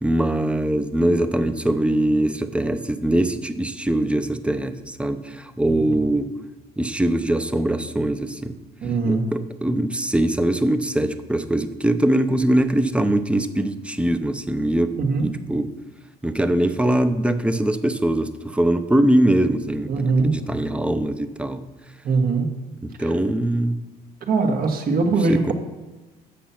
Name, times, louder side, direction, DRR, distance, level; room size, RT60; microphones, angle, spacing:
voice 1, 0.0-6.3 6.8-8.5 9.1-14.9 15.2-15.7 16.2-19.9 20.2-21.6 23.0-23.8 25.3-25.5, right 1 dB, 5° right, 10 dB, 0.6 m, -22 dB
voice 2, 8.8-9.3 15.0-15.3 19.9-20.4 22.0-22.5 23.0-23.1 24.3-25.5, right 4 dB, 60° right, 4 dB, 1.6 m, -21 dB
8.4 x 7.0 x 5.8 m, 1.2 s
cardioid pair, 110°, 17 cm